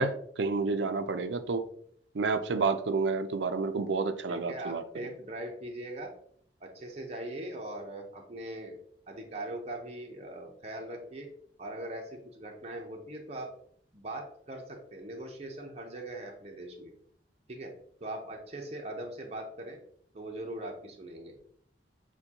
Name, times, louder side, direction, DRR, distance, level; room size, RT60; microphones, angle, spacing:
voice 1, 0.0-1.6 2.1-4.8, right 4 dB, 90° right, 0.5 m, -29 dB
voice 2, 4.3-6.1 6.6-8.8 9.1-11.3 11.6-13.5 13.9-16.9 17.5-17.7 18.0-19.8 20.1-21.4, right 1 dB, 35° right, 0.7 m, -40 dB
6.7 x 2.2 x 2.8 m
head